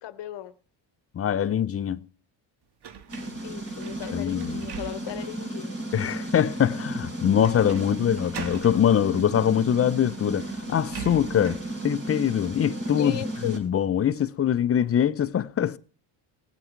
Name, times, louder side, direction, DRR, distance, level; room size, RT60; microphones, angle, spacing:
voice 1, 0.0-0.5 3.4-5.8 12.9-13.6, left 12 dB, 65° left, 1.0 m, -36 dB
voice 2, 1.1-2.1 4.1-4.6 5.9-13.2 13.5-15.8, left 9 dB, 30° left, 0.6 m, -23 dB
sound 1, 2.8-5.4 5.9-6.0 7.4-7.9 8.1-8.8 9.8-9.9 10.2-11.7, right 8 dB, 55° right, 1.7 m, -41 dB
sound 2, 3.1-13.6, right 1 dB, 30° right, 3.4 m, -34 dB
18.5 x 7.8 x 4.5 m
cardioid pair, 90°, 46 cm